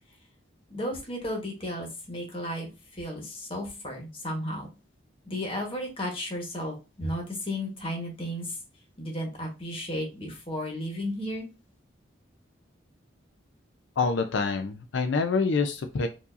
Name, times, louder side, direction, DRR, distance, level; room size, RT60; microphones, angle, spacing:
voice 1, 0.7-4.7 5.3-8.6 9.0-11.5, left 1 dB, 30° left, 1 dB, 1.3 m, -34 dB
voice 2, 14.0-16.1, left 4 dB, 75° left, 6 dB, 0.5 m, -26 dB
4.6 x 2.7 x 2.6 m, 0.30 s
head